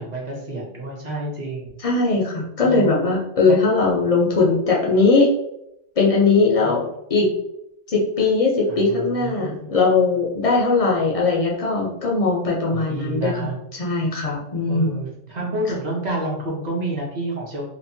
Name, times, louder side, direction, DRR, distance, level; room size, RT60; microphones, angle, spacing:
voice 1, 0.0-1.8 2.6-3.0 3.4-3.6 6.6-6.7 7.2-7.4 8.7-9.7 12.7-13.6 14.7-17.7, right 1 dB, 45° right, -2 dB, 0.6 m, -29 dB
voice 2, 1.8-5.3 6.0-6.8 7.1-7.3 7.9-13.4 13.8-14.9, left 3 dB, 60° left, -3 dB, 0.3 m, -19 dB
2.9 x 2.1 x 2.6 m, 0.80 s
omnidirectional pair, 1.3 m